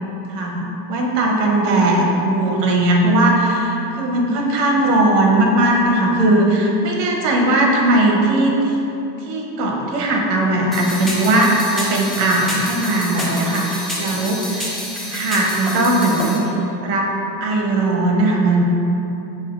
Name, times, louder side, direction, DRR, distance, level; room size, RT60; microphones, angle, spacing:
voice 1, 0.3-8.6 9.3-14.7 15.1-16.4 16.8-17.1 17.4-18.6, right 1 dB, 75° right, 0 dB, 0.9 m, -18 dB
sound 1, 10.7-16.4, equal, ahead, 0.7 m, -28 dB
7.2 x 2.5 x 2.5 m, 2.9 s
hypercardioid pair, 95°, 49 cm